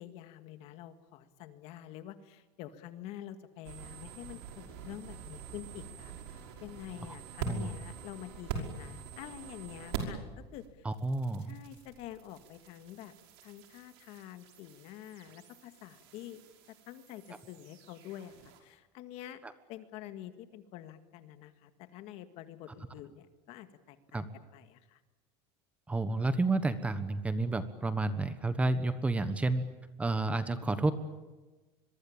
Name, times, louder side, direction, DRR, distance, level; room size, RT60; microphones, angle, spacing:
voice 1, 0.0-10.9 11.4-13.1 13.4-16.4 16.9-19.4 19.7-24.3 24.5-25.0, left 12 dB, 55° left, 9 dB, 2.0 m, -47 dB
sound 1, 3.6-10.3 10.5-18.6, right 6 dB, 75° right, 5.5 m, -44 dB
voice 2, 10.8-11.6 19.4-19.5 24.1-24.3 25.9-29.6 30.0-30.9, right 2 dB, 10° right, 11 dB, 1.3 m, -30 dB
25.0 x 23.0 x 8.8 m, 1.2 s
cardioid pair, 155°, 13 cm